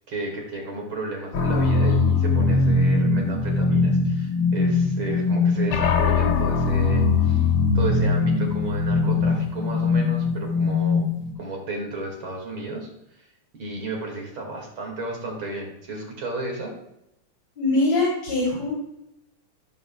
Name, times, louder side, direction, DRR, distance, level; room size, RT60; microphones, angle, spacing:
voice 1, 0.1-7.5 7.7-11.0 11.4-12.9 13.6-16.7, right 2 dB, 65° right, 0 dB, 2.9 m, -33 dB
sound 1, 1.3-11.3, left 4 dB, 85° left, 1.9 m, -21 dB
voice 2, 17.6-18.7, left 2 dB, 60° left, -5 dB, 3.4 m, -22 dB
15.5 x 5.3 x 2.3 m, 0.84 s
omnidirectional pair, 2.4 m